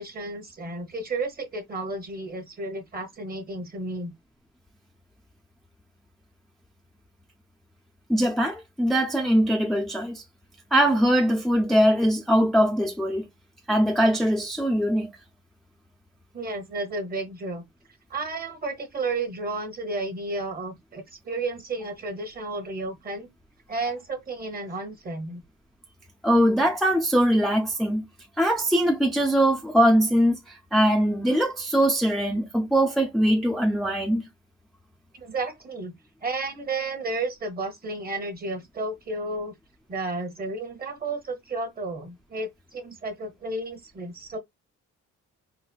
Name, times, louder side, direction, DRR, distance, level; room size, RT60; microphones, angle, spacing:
voice 1, 0.0-4.1 16.3-17.6 18.1-23.3 23.7-25.4 35.1-35.9 36.2-39.5 39.9-44.4, right 2 dB, 30° right, 1.0 m, -32 dB
voice 2, 8.1-10.2 10.7-13.3 13.7-15.1 26.2-28.1 28.4-34.3, equal, ahead, 0.4 m, -22 dB
4.0 x 2.1 x 2.3 m
cardioid pair, 90°, 30 cm